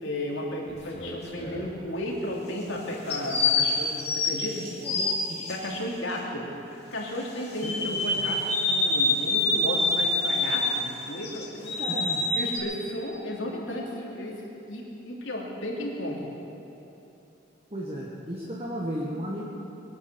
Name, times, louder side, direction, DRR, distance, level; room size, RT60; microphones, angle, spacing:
voice 1, 0.0-4.6 5.5-6.5 6.9-11.8 12.3-14.4 14.7-16.3, left 1 dB, 80° left, -2 dB, 3.0 m, -33 dB
sound 1, 0.7-1.7 3.1-5.5 7.6-10.8 11.2-12.6, left 2 dB, 35° left, 2.4 m, -26 dB
voice 2, 4.8-5.4 7.6-8.0 11.8-12.2 17.7-19.4, equal, 30° right, -3 dB, 1.5 m, -34 dB
22.0 x 8.8 x 6.9 m, 2.8 s
head